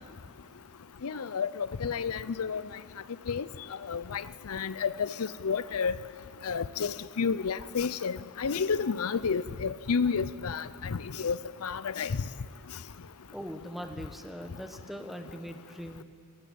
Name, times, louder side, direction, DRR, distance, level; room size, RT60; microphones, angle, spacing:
voice 1, 1.0-2.6 3.3-3.4 3.9-5.9 6.4-12.2, left 5 dB, 90° left, 16 dB, 0.6 m, -31 dB
voice 2, 13.3-16.0, equal, ahead, 6 dB, 1.3 m, -41 dB
29.0 x 16.0 x 8.6 m, 2.6 s
head